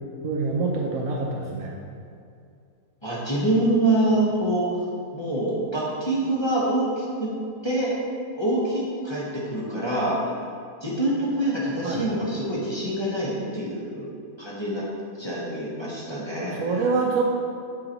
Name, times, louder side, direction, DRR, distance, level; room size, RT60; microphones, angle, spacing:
voice 1, 0.2-1.8 11.8-12.0 16.5-17.2, right 4 dB, 75° right, -3 dB, 1.1 m, -25 dB
voice 2, 3.0-4.7 5.1-7.3 7.6-7.9 8.4-10.2 10.8-14.1 14.4-14.8 15.2-16.6, right 1 dB, 20° left, -8 dB, 1.0 m, -25 dB
7.7 x 4.7 x 2.9 m, 2.4 s
omnidirectional pair, 1.5 m